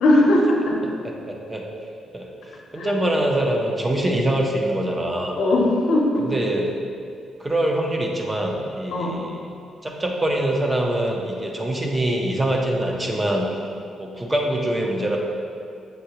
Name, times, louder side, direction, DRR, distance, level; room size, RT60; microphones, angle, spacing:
voice 1, 0.0-0.8 2.8-2.9 5.3-6.3 8.9-9.2, left 1 dB, 80° left, -2 dB, 0.7 m, -19 dB
voice 2, 1.0-1.6 2.1-2.3 2.7-5.4 6.2-6.7 7.4-9.5 9.8-13.6 14.0-15.2, right 1 dB, 10° right, 0 dB, 0.4 m, -24 dB
6.3 x 2.7 x 2.9 m, 2.4 s
cardioid pair, 180°, 0 cm